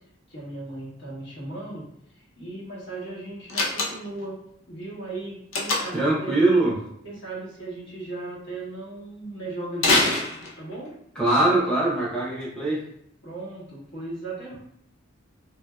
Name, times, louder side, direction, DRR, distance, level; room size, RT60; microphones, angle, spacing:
voice 1, 0.3-1.8 2.1-4.4 4.7-6.5 7.0-10.1 10.6-10.9 13.2-14.6, right 2 dB, 60° left, -5 dB, 1.2 m, -37 dB
Slam, 3.5-4.2 5.5-6.1 9.8-10.9, left 2 dB, 80° left, 0.7 m, -24 dB
voice 2, 5.9-6.7 11.2-12.8, right 2 dB, 5° left, -7 dB, 0.7 m, -22 dB
3.3 x 2.7 x 2.3 m, 0.73 s
head